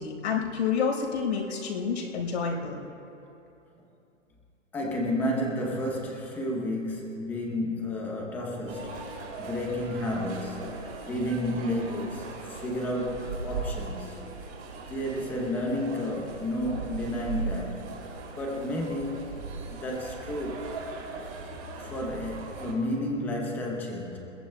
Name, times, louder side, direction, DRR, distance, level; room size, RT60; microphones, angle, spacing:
voice 1, 0.0-2.8 10.6-10.7, left 6 dB, 65° left, -1 dB, 4.5 m, -29 dB
voice 2, 4.7-14.2 14.9-17.9 18.4-19.4 19.7-20.8 21.8-24.2, left 1 dB, 5° left, -1 dB, 0.7 m, -31 dB
sound 1, 8.7-22.7, right 4 dB, 30° right, 4.1 m, -39 dB
28.0 x 21.5 x 2.2 m, 2.8 s
hypercardioid pair, 165°, 38 cm